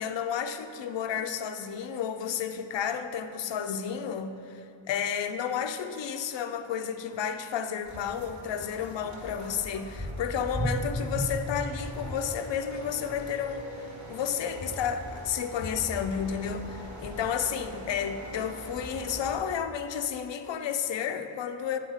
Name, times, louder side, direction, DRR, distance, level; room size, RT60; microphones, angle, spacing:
voice 1, 0.0-21.8, left 8 dB, 65° left, 8 dB, 0.5 m, -32 dB
sound 1, 7.8-19.4, equal, 35° right, 1.2 m, -38 dB
8.2 x 4.0 x 4.9 m, 2.6 s
wide cardioid pair, 75°, 48 cm